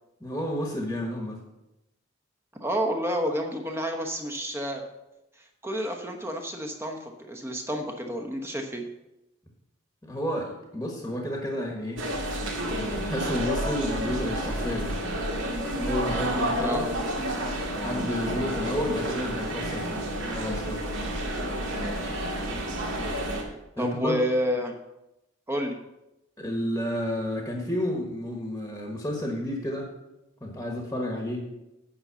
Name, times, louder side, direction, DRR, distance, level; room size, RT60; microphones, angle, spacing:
voice 1, 0.2-1.4 10.0-12.0 12.7-15.0 15.8-16.9 17.7-20.0 20.3-20.8 23.8-24.2 26.4-29.9 30.4-31.4, left 1 dB, 10° left, 1 dB, 1.3 m, -31 dB
voice 2, 2.6-4.8 5.4-8.9 16.6-16.9 23.8-24.8 25.5-25.8, equal, 10° right, 3 dB, 1.0 m, -29 dB
sound 1, 12.0-23.4, right 1 dB, 70° right, 2.1 m, -30 dB
8.8 x 5.5 x 6.9 m, 0.92 s
head